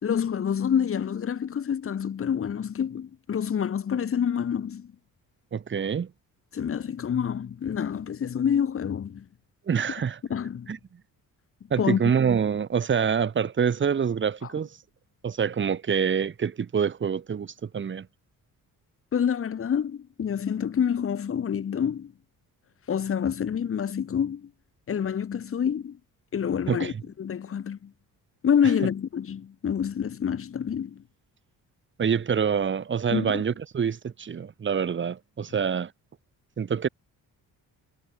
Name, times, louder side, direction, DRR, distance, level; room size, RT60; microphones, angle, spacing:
voice 1, 0.0-4.9 6.5-9.3 10.3-10.7 11.8-12.0 19.1-22.1 22.9-24.5 24.9-26.0 26.3-27.9 28.4-31.0 33.1-33.4, left 8 dB, 40° left, 4.0 m, -27 dB
voice 2, 5.5-6.1 9.7-10.2 10.7-10.8 11.7-14.7 15.2-18.1 26.7-26.9 32.0-35.9 36.6-36.9, right 7 dB, 35° right, 3.9 m, -26 dB
cardioid pair, 180°, 35 cm